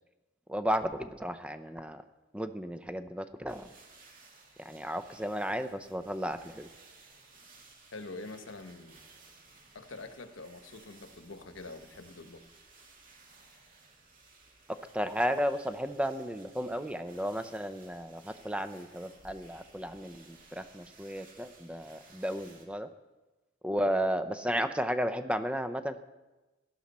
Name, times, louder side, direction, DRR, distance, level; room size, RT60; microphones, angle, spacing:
voice 1, 0.5-2.0 2.3-3.7 4.6-6.7 14.9-22.9 23.6-26.0, equal, 5° right, 9 dB, 0.6 m, -33 dB
sound 1, 3.5-22.7, right 3 dB, 45° right, 2.3 m, -58 dB
voice 2, 7.9-9.0 9.7-12.4, left 3 dB, 85° left, 7 dB, 1.2 m, -45 dB
17.5 x 12.0 x 4.3 m, 1.1 s
head